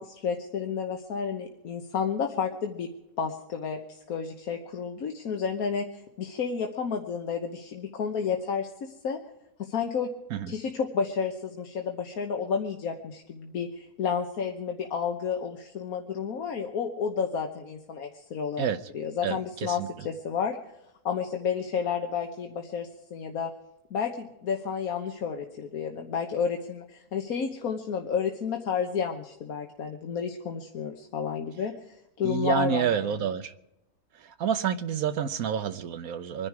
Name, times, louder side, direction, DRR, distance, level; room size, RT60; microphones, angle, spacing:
voice 1, 0.0-2.9 3.2-9.2 9.6-10.1 10.5-18.6 18.9-20.6 21.0-23.5 23.9-32.9, left 6 dB, 85° left, 3 dB, 1.5 m, -31 dB
voice 2, 19.2-19.9 32.2-33.5 34.1-36.5, right 8 dB, 85° right, 10 dB, 1.2 m, -29 dB
24.5 x 10.5 x 4.8 m, 0.85 s
omnidirectional pair, 1.5 m